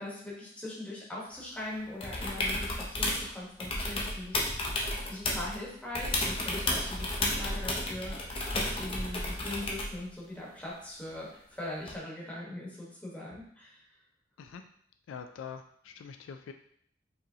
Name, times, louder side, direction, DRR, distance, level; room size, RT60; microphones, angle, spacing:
voice 1, 0.0-4.4 5.1-13.8, left 1 dB, 5° left, -5 dB, 1.1 m, -41 dB
sound 1, 2.0-3.3 3.6-5.6 5.9-10.0 11.9-12.0, left 1 dB, 30° left, 0.6 m, -32 dB
voice 2, 15.1-16.5, left 6 dB, 80° left, 6 dB, 0.3 m, -44 dB
4.8 x 3.1 x 2.7 m, 0.65 s
head